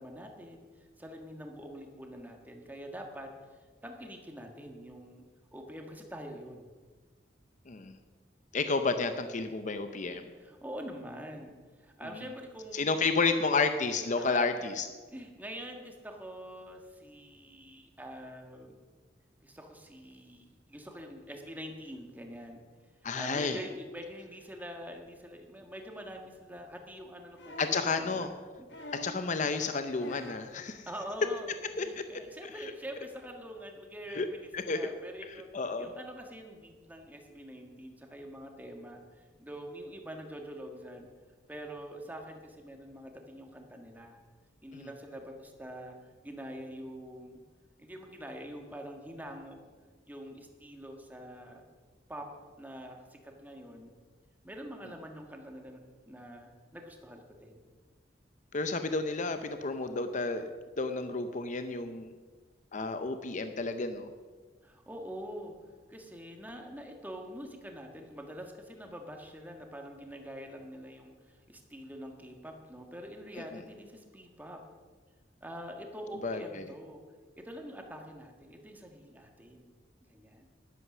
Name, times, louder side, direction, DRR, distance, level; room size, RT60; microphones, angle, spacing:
voice 1, 0.0-3.3 3.8-5.2 5.5-6.7 10.4-13.0 14.2-14.7 15.1-18.8 19.4-22.6 23.0-27.7 28.0-28.3 28.6-28.7 30.9-34.5 34.7-35.5 35.8-41.1 41.5-44.2 44.6-47.4 47.8-49.6 50.0-51.6 52.1-52.3 52.6-53.9 54.4-57.6 64.6-65.5 65.9-74.6 75.4-77.0 77.4-79.7 80.0-80.5, equal, 10° right, 3 dB, 1.6 m, -45 dB
voice 2, 7.7-8.0 8.5-10.2 12.0-12.2 12.7-14.9 23.0-23.6 27.6-28.3 28.9-30.9 31.8-32.0 32.4-32.7 34.1-34.3 34.5-34.8 35.5-35.9 44.7-44.9 58.5-60.4 60.8-62.1 62.7-64.1 73.3-73.6 76.2-76.7, left 4 dB, 45° left, 8 dB, 0.7 m, -31 dB
sound 1, 27.4-27.9 28.7-29.2 30.0-30.5 31.7-31.8, left 1 dB, 70° left, 1.6 m, -45 dB
11.5 x 11.0 x 6.1 m, 1.4 s
head